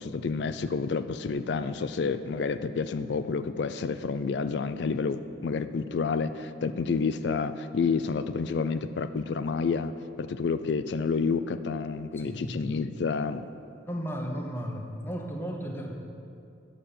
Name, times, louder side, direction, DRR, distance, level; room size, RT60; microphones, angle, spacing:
voice 1, 0.0-9.9 10.2-13.5, left 5 dB, 65° left, 12 dB, 0.4 m, -29 dB
voice 2, 12.2-13.0 13.9-15.9, equal, 10° left, 1 dB, 1.0 m, -35 dB
8.6 x 7.4 x 7.0 m, 2.6 s
head